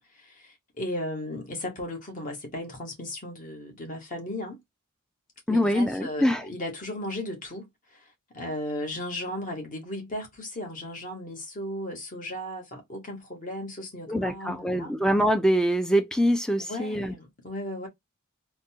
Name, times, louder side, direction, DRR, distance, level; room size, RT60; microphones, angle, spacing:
voice 1, 0.0-4.6 5.5-14.9 16.6-17.9, left 1 dB, 35° left, 1.3 m, -36 dB
voice 2, 5.5-6.4 14.1-17.1, equal, 5° left, 0.5 m, -24 dB
3.8 x 2.3 x 2.8 m
head